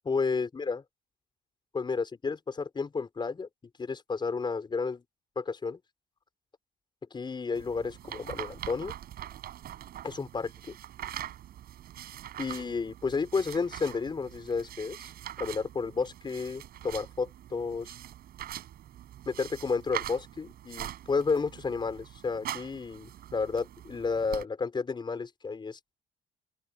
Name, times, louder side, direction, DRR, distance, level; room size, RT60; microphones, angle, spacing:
voice 1, 0.0-0.8 1.7-3.5 3.8-5.0 5.4-5.8 7.1-8.9 10.0-10.8 12.4-15.1 15.4-17.9 19.3-26.0, left 4 dB, 25° left, 5.3 m, -32 dB
sound 1, 7.5-24.4, right 12 dB, 65° right, 6.2 m, -43 dB
open air
cardioid pair, 110°, 17 cm